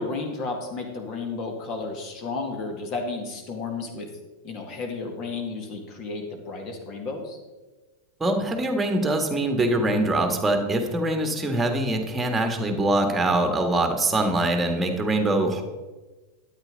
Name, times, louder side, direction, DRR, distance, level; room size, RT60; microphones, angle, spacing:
voice 1, 0.0-4.1 4.4-7.4, left 3 dB, 35° left, 3 dB, 2.1 m, -32 dB
voice 2, 8.2-15.6, right 1 dB, 10° right, 5 dB, 1.7 m, -23 dB
13.0 x 9.3 x 3.9 m, 1.2 s
figure-of-eight pair, 90°, 0 cm